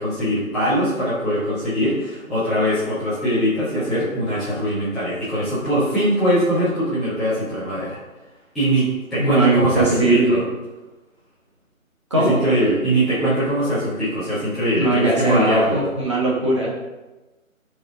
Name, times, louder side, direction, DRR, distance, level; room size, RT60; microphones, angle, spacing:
voice 1, 0.0-8.0 8.5-10.4 12.1-15.8, equal, ahead, -17 dB, 1.2 m, -21 dB
voice 2, 9.2-10.4 12.1-12.3 14.8-16.7, right 2 dB, 20° right, -4 dB, 1.1 m, -19 dB
12.0 x 4.8 x 3.7 m, 1.1 s
figure-of-eight pair, 150°, 42 cm